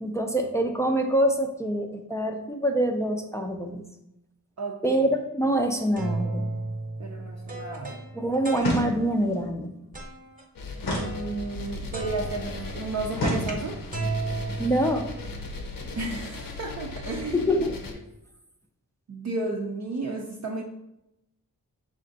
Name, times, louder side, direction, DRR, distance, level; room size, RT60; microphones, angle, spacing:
voice 1, 0.0-3.8 4.8-6.5 8.1-9.7 14.6-15.1 17.3-17.8, right 1 dB, 10° left, 3 dB, 0.4 m, -25 dB
voice 2, 4.6-5.0 7.0-8.0 10.9-13.8 15.9-17.4 19.1-20.6, right 3 dB, 45° right, -1 dB, 0.5 m, -33 dB
sound 1, 5.6-9.2 9.9-10.4 10.9-11.7 11.9-15.4, right 2 dB, 25° right, 0.9 m, -35 dB
sound 2, 8.6-9.3 10.8-11.8 13.1-14.0, left 1 dB, 90° left, 1.0 m, -30 dB
sound 3, 10.5-17.9, left 3 dB, 65° left, 0.7 m, -38 dB
4.4 x 2.5 x 3.8 m, 0.86 s
cardioid pair, 65°, 37 cm